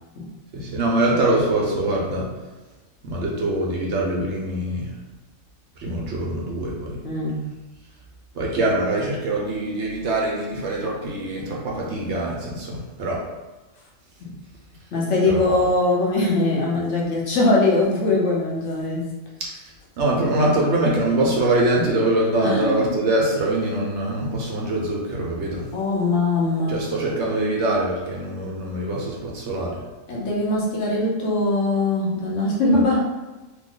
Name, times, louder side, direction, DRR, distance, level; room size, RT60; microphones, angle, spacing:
voice 1, 0.5-2.2 3.0-4.9 5.8-7.0 8.3-13.2 15.2-15.5 19.4-19.7 20.0-25.6 26.7-29.8 32.7-32.8, right 1 dB, 65° right, -3 dB, 0.9 m, -23 dB
voice 2, 7.0-7.4 14.2-14.3 14.9-19.1 22.4-23.0 25.7-26.8 30.1-33.0, left 2 dB, 65° left, -3 dB, 1.0 m, -21 dB
2.9 x 2.1 x 3.7 m, 1.1 s
omnidirectional pair, 1.4 m